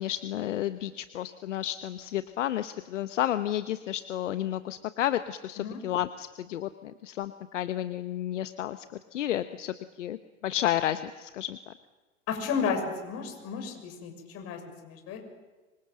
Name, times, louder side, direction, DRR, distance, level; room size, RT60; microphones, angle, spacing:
voice 1, 0.0-10.2 10.4-11.7, left 12 dB, 65° left, 12 dB, 1.1 m, -31 dB
voice 2, 12.3-15.3, left 6 dB, 35° left, 4 dB, 6.6 m, -33 dB
25.0 x 25.0 x 7.8 m, 1.2 s
hypercardioid pair, 105°, 39 cm